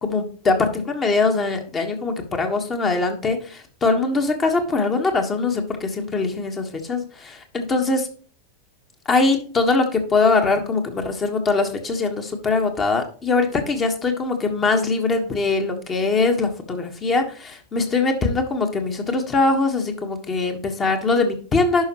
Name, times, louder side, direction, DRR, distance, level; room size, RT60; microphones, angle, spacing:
voice 1, 0.0-8.1 9.0-21.8, left 3 dB, 25° left, 5 dB, 1.4 m, -22 dB
11.0 x 5.5 x 3.0 m, 0.42 s
figure-of-eight pair, 90°, 0 cm